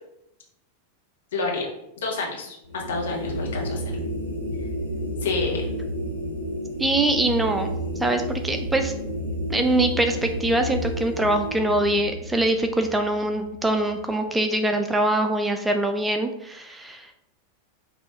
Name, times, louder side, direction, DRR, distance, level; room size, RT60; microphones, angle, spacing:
voice 1, 1.3-1.7 2.0-3.8 5.2-5.7, left 3 dB, 60° left, -2 dB, 1.3 m, -28 dB
sound 1, 2.6-14.0, equal, 90° left, 0.9 m, -31 dB
voice 2, 6.8-8.9 9.5-17.2, right 1 dB, 10° right, 6 dB, 0.4 m, -23 dB
5.3 x 2.9 x 2.7 m, 0.81 s
figure-of-eight pair, 90°, 0 cm